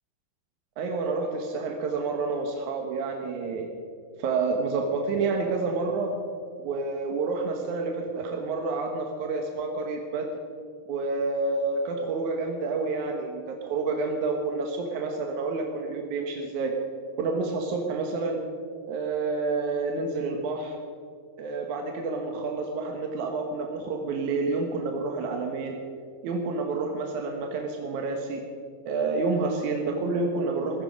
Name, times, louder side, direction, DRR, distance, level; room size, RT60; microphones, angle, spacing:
voice 1, 0.8-3.7 4.2-6.2 6.6-10.3 10.9-16.7 17.2-18.4 18.9-20.8 21.4-25.8 26.2-28.5 28.9-30.8, right 3 dB, 65° right, 2 dB, 2.0 m, -29 dB
15.5 x 15.5 x 5.2 m, 2.3 s
omnidirectional pair, 4.9 m